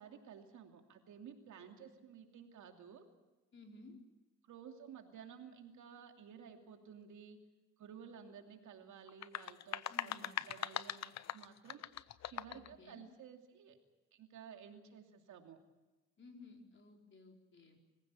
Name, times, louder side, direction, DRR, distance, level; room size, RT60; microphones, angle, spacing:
voice 1, 0.0-3.0 4.4-7.4 7.8-11.8 12.3-13.8 14.1-15.6, right 7 dB, 75° right, 4 dB, 2.7 m, -54 dB
voice 2, 3.5-4.0 9.9-10.4 12.5-13.0 16.2-17.8, left 3 dB, 40° left, 2 dB, 4.3 m, -57 dB
sound 1, 9.1-12.7, left 12 dB, 60° left, 0.8 m, -42 dB
24.0 x 16.0 x 8.3 m, 1.1 s
cardioid pair, 90°, 30 cm